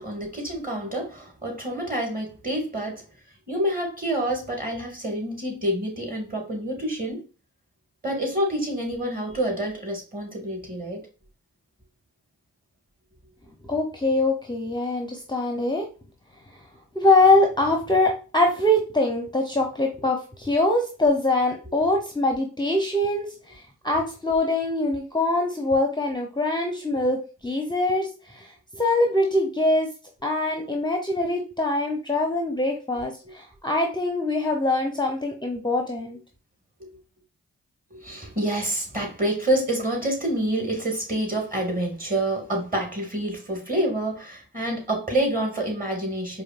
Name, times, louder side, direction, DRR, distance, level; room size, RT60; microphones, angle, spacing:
voice 1, 0.0-3.0 3.5-7.2 8.0-11.0 36.8-36.9 37.9-46.4, right 1 dB, 25° right, 2.1 m, -27 dB
voice 2, 13.6-15.9 16.9-29.9 30.2-36.2, left 2 dB, 10° left, 0.8 m, -23 dB
4.8 x 2.7 x 2.5 m
supercardioid pair, 45°, 35 cm